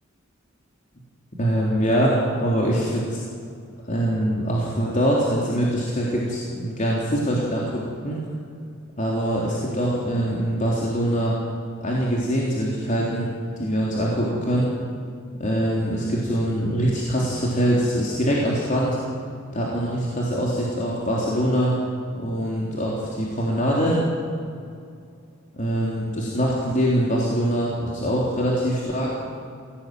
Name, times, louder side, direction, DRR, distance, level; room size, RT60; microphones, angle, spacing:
voice 1, 1.4-3.2 3.8-8.2 9.0-11.3 11.8-13.3 13.6-14.7 15.4-19.0 19.5-21.7 22.1-24.0 25.5-29.2, equal, 40° left, -4 dB, 3.7 m, -23 dB
22.5 x 17.0 x 9.3 m, 2.4 s
head